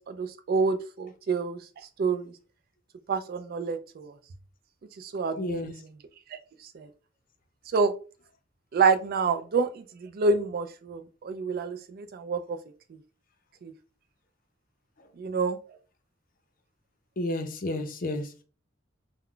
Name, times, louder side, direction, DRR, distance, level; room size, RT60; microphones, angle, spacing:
voice 1, 0.0-1.6 2.0-2.3 3.1-4.1 5.0-5.7 6.7-6.9 7.7-7.9 8.7-12.6 13.6-13.7 15.2-15.6, right 4 dB, 50° right, 9 dB, 0.3 m, -27 dB
voice 2, 5.4-5.7 17.2-18.4, left 1 dB, 45° left, 6 dB, 0.5 m, -31 dB
2.2 x 2.1 x 3.7 m, 0.37 s
head